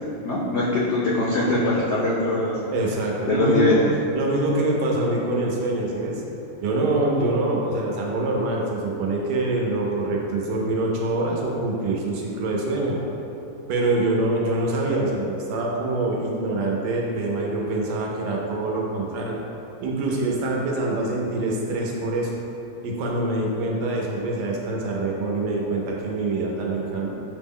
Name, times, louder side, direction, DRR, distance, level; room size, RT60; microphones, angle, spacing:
voice 1, 0.2-2.5 3.2-3.8, left 2 dB, 80° left, -6 dB, 0.6 m, -22 dB
voice 2, 2.7-3.8 4.1-6.2 6.6-13.0 13.7-19.3 19.8-22.3 22.8-27.1, right 2 dB, 85° right, -1 dB, 1.2 m, -25 dB
5.3 x 2.0 x 3.6 m, 2.9 s
omnidirectional pair, 1.7 m